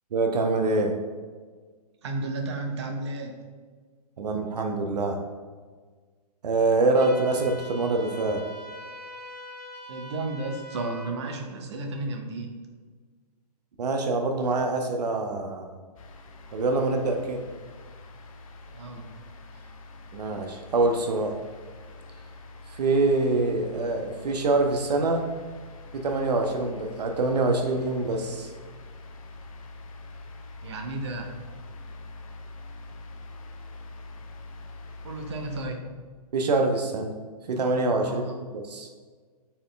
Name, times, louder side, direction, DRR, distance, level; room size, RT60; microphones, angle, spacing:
voice 1, 0.1-0.9 4.2-5.2 6.4-8.5 13.8-15.8 16.5-17.4 20.1-21.3 22.7-25.2 25.9-28.5 36.3-37.1 37.5-38.2 38.5-38.9, right 3 dB, 80° right, 3 dB, 0.7 m, -25 dB
voice 2, 2.0-3.4 9.9-12.5 18.7-19.0 30.6-31.3 35.0-35.8 38.0-38.4, right 2 dB, 45° right, 3 dB, 0.7 m, -33 dB
sound 1, 6.9-11.1, equal, 85° left, 1.0 m, -42 dB
sound 2, 16.0-35.6, left 2 dB, 60° left, 0.6 m, -45 dB
4.3 x 3.2 x 3.8 m, 1.5 s
hypercardioid pair, 160°, 20 cm